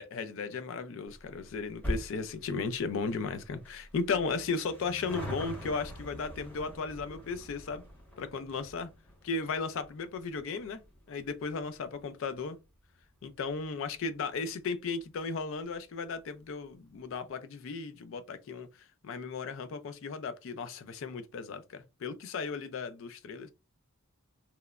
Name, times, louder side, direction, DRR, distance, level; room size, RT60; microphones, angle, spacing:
voice 1, 0.0-7.8 8.2-8.9 9.2-10.8 11.1-12.6 13.2-18.7 19.0-23.5, left 4 dB, 65° left, 0.4 m, -35 dB
sound 1, 1.1-13.8 14.1-14.2 15.1-15.2 15.4-15.5 15.8-15.9, equal, 10° left, 0.9 m, -44 dB
2.9 x 2.0 x 2.3 m
head